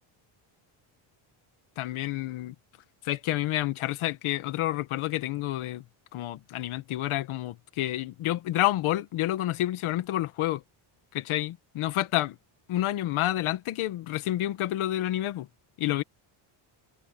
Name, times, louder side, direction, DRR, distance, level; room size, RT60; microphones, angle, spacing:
voice 1, 1.8-2.5 3.0-5.8 6.1-10.6 11.1-12.4 12.7-15.5 15.8-16.0, left 14 dB, 80° left, 1.8 m, -29 dB
cardioid pair, 150°, 49 cm